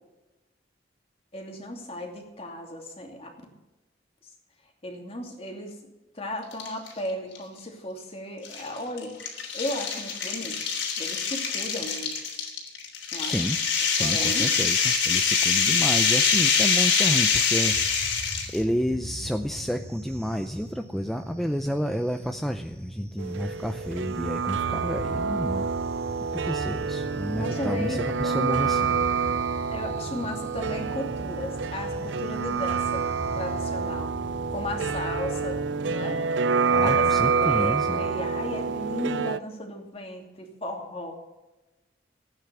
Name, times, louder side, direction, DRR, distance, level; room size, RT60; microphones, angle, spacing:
voice 1, 1.3-3.3 4.8-5.7 6.1-9.2 9.5-10.6 11.0-12.2 13.1-13.4 14.0-14.5 27.4-28.4 29.7-33.0 33.3-34.1 34.5-35.6 35.9-36.2 36.8-41.2, left 1 dB, 30° left, 2 dB, 2.7 m, -35 dB
sound 1, 6.5-6.9 7.3-7.4 8.4-18.6, left 6 dB, 85° left, 3.3 m, -24 dB
voice 2, 13.2-13.6 13.9-25.7 26.3-29.0 36.7-38.0, equal, ahead, 6 dB, 0.5 m, -30 dB
sound 2, 17.7-36.3, equal, 15° right, 3.3 m, -41 dB
sound 3, 23.2-39.4, right 5 dB, 75° right, 0.4 m, -27 dB
15.0 x 9.4 x 6.9 m, 1.1 s
head